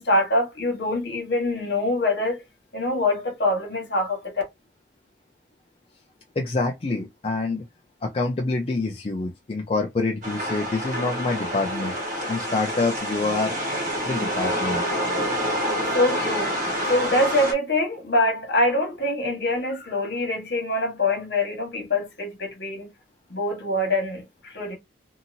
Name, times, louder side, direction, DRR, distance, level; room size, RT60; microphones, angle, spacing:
voice 1, 0.0-2.4 2.7-4.2 15.9-16.5 16.9-22.9 23.3-24.8, left 1 dB, 60° left, 1.5 m, -24 dB
voice 2, 6.4-7.7 8.0-11.9 12.3-13.6 14.0-14.8, left 3 dB, 30° left, 0.3 m, -26 dB
sound 1, 10.2-17.5, equal, 40° right, 1.2 m, -27 dB
2.9 x 2.7 x 2.6 m
head